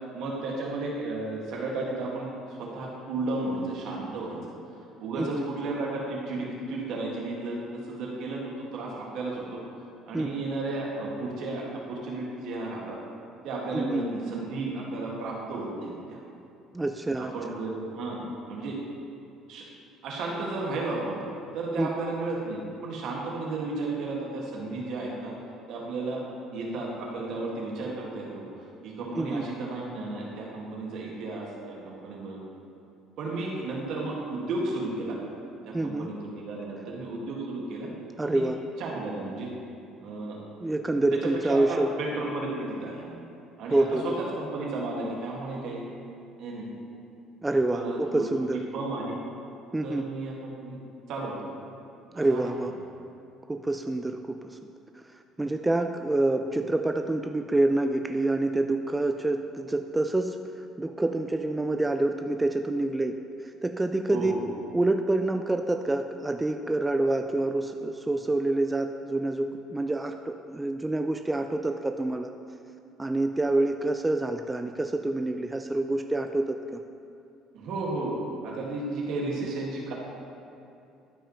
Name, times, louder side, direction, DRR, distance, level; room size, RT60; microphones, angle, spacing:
voice 1, 0.1-4.4 5.0-8.4 8.7-9.6 10.1-13.0 13.4-16.2 17.2-18.8 19.5-19.6 20.0-21.2 21.5-25.3 25.7-26.2 26.5-28.5 28.8-32.4 33.2-35.2 35.6-37.9 38.2-38.5 38.8-39.5 40.0-40.4 41.1-43.2 43.6-43.9 44.2-45.9 46.4-46.7 47.7-48.3 48.5-49.2 49.8-50.8 51.1-51.5 52.1-52.4 64.1-64.4 77.5-78.2 78.4-79.9, right 2 dB, 70° right, -3 dB, 1.8 m, -33 dB
voice 2, 5.2-5.5 10.1-10.3 13.7-14.1 16.7-17.3 21.8-21.9 29.2-29.5 35.7-36.1 38.2-38.6 40.6-41.9 43.7-44.2 47.4-48.6 49.7-50.1 52.1-52.7 53.5-54.6 55.4-64.3 64.7-72.3 73.0-76.8, right 2 dB, 15° right, 5 dB, 0.3 m, -27 dB
12.5 x 5.1 x 3.0 m, 2.7 s
supercardioid pair, 90°, 0 cm